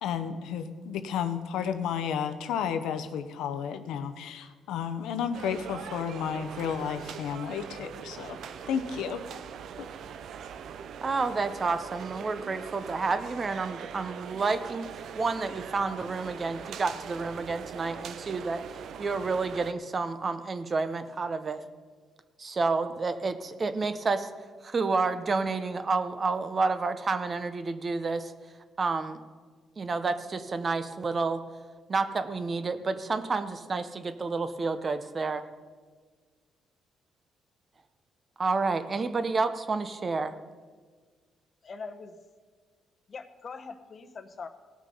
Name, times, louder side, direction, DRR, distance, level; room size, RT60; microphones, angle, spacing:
voice 1, 0.0-8.4 8.7-9.2 9.8-9.9, left 7 dB, 85° left, 9 dB, 0.8 m, -32 dB
sound 1, 5.3-19.7, right 7 dB, 70° right, 0.5 m, -42 dB
voice 2, 11.0-14.9 15.2-18.6 19.0-21.6 22.4-24.3 24.6-28.3 28.8-29.2 29.8-31.4 31.9-35.4 38.4-40.3, right 4 dB, 35° right, 10 dB, 0.8 m, -29 dB
voice 3, 41.6-42.1 43.1-44.5, left 4 dB, 45° left, 8 dB, 0.9 m, -42 dB
17.5 x 6.2 x 5.5 m, 1.5 s
cardioid pair, 90°, 0 cm